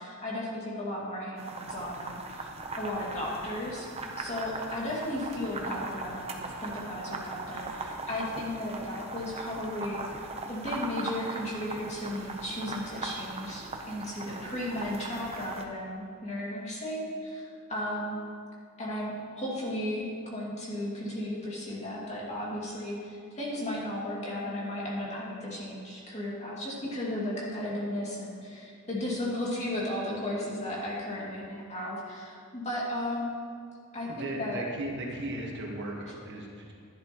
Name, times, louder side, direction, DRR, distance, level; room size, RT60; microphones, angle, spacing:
voice 1, 0.0-2.5 2.8-10.0 10.5-18.2 18.8-33.3 33.9-34.6, left 1 dB, 30° left, -5 dB, 2.3 m, -35 dB
sound 1, 1.4-15.6, right 3 dB, 30° right, 0.8 m, -39 dB
voice 2, 34.1-36.7, right 1 dB, 55° right, -1 dB, 1.4 m, -36 dB
11.5 x 11.0 x 3.1 m, 2.3 s
head